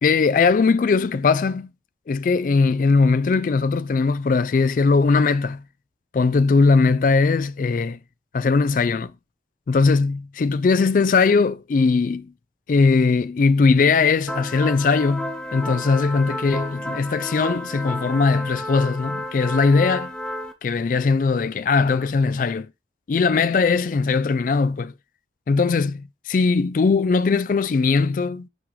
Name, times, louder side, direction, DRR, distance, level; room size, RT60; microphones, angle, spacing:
voice 1, 0.0-1.7 2.1-5.6 6.1-8.0 8.3-9.1 9.7-12.3 12.7-20.1 20.6-22.7 23.1-24.9 25.5-28.5, left 4 dB, 50° left, 0.3 m, -20 dB
sound 1, 14.3-20.5, left 1 dB, 5° left, 0.7 m, -31 dB
6.2 x 4.9 x 4.8 m
head